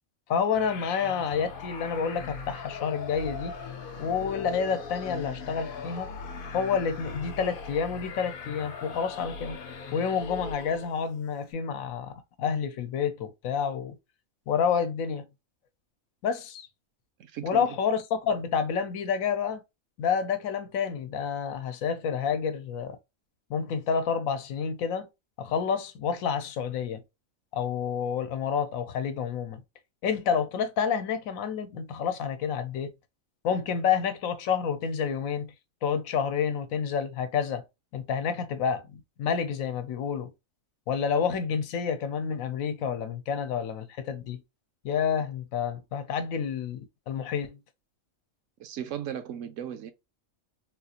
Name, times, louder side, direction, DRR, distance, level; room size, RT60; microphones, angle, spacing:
voice 1, 0.3-3.6 4.0-6.1 6.5-9.6 9.9-13.9 14.5-15.2 16.2-16.7 17.4-19.6 20.0-23.0 23.5-25.1 25.4-27.0 27.5-29.6 30.0-32.9 33.4-35.5 35.8-37.6 37.9-40.3 40.9-44.4 44.8-47.6, left 7 dB, 80° left, 1.0 m, -29 dB
sound 1, 0.5-11.1, left 5 dB, 60° left, 0.6 m, -39 dB
voice 2, 17.2-17.8 48.6-49.9, right 10 dB, 70° right, 0.9 m, -36 dB
3.7 x 2.4 x 2.8 m
omnidirectional pair, 1.4 m